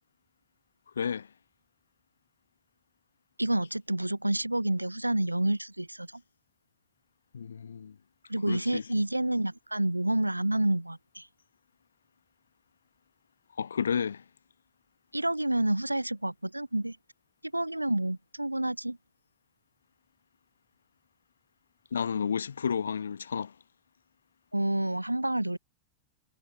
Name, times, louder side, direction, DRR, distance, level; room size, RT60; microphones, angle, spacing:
voice 1, 1.0-1.3 7.3-7.9 8.5-8.9 13.6-14.2 21.9-23.5, left 6 dB, 70° left, 1.3 m, -31 dB
voice 2, 3.4-6.1 8.3-11.3 15.1-17.0 17.5-19.0 24.5-25.6, right 1 dB, 85° right, 0.6 m, -29 dB
figure-of-eight pair, 90°, 0 cm